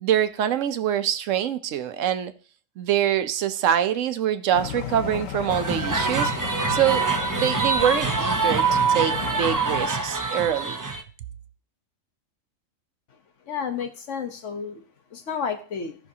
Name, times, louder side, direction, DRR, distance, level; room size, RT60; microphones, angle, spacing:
voice 1, 0.0-2.3 2.8-6.3 6.7-7.0 7.3-10.8, right 10 dB, 75° right, 1.0 m, -24 dB
sound 1, 4.5-9.9, left 9 dB, 90° left, 1.1 m, -34 dB
sound 2, 5.5-11.0, right 4 dB, 30° right, 0.3 m, -25 dB
voice 2, 13.5-14.8 15.1-16.0, left 6 dB, 70° left, 1.3 m, -31 dB
15.5 x 5.7 x 2.8 m
omnidirectional pair, 1.3 m